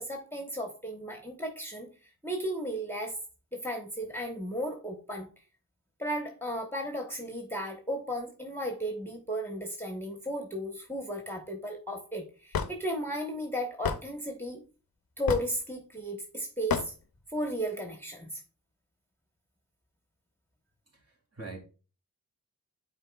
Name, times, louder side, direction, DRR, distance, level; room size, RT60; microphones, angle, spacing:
voice 1, 0.0-1.9 2.2-3.2 3.5-5.3 6.0-14.6 15.2-16.9 17.3-18.4, equal, 5° left, 2 dB, 1.1 m, -35 dB
Hammer / Wood, 12.5-12.7 13.8-14.0 15.3-15.6 16.7-16.9, left 6 dB, 85° left, 0.6 m, -29 dB
voice 2, 20.9-21.6, right 3 dB, 45° right, 0 dB, 2.7 m, -44 dB
9.6 x 4.4 x 2.3 m, 0.35 s
wide cardioid pair, 80°, 35 cm